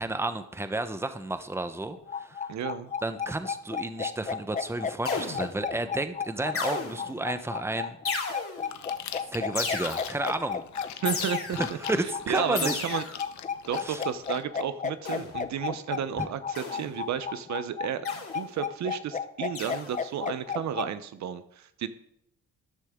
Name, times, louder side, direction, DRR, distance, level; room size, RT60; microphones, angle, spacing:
voice 1, 0.0-2.5 3.0-8.0 9.3-10.6 11.6-12.8 13.8-14.0 16.2-16.3, right 2 dB, 10° right, 10 dB, 1.0 m, -32 dB
sound 1, 1.9-20.9, left 6 dB, 25° left, 0.8 m, -33 dB
voice 2, 2.5-2.9 11.0-11.6 12.3-13.0 13.7-21.9, right 9 dB, 65° right, 12 dB, 0.9 m, -32 dB
sound 2, 5.1-5.7 6.6-7.2 8.1-8.8 9.6-10.3 11.1-11.8 12.6-13.3 15.1-15.4 16.6-17.0 18.1-18.5 19.6-20.0, left 4 dB, 45° left, 2.9 m, -34 dB
Chewing mastication, 8.6-14.4, left 10 dB, 70° left, 0.9 m, -43 dB
14.0 x 10.0 x 3.7 m, 0.75 s
cardioid pair, 90°, 30 cm